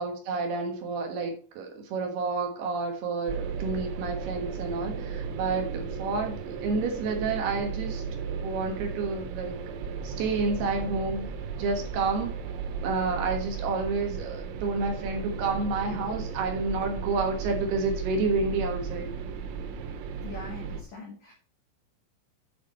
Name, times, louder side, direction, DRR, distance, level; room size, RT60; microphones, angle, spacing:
voice 1, 0.0-8.0 8.4-9.5 10.0-11.3 11.6-12.4 12.8-19.1, right 3 dB, 65° right, 3 dB, 2.9 m, -30 dB
sound 1, 3.3-20.8, right 6 dB, 85° right, 3.8 m, -35 dB
voice 2, 20.2-21.3, left 3 dB, 90° left, 1 dB, 1.6 m, -42 dB
8.8 x 6.9 x 4.3 m, 0.40 s
omnidirectional pair, 5.9 m